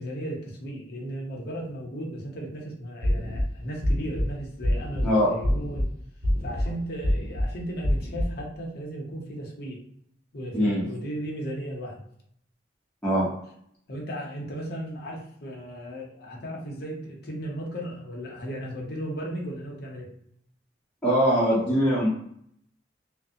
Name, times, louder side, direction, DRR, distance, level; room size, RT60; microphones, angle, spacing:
voice 1, 0.0-5.9 6.4-9.8 10.3-12.0 13.9-20.1, right 1 dB, 60° left, -1 dB, 0.7 m, -35 dB
sound 1, 3.0-3.4 3.8-4.2 4.6-5.0 5.4-5.9 6.2-6.7 7.0-7.5 7.8-8.3, left 1 dB, 45° right, 1.2 m, -25 dB
voice 2, 10.5-10.9 13.0-13.3 21.0-22.1, equal, 5° left, -10 dB, 0.7 m, -22 dB
2.4 x 2.0 x 2.7 m, 0.69 s
head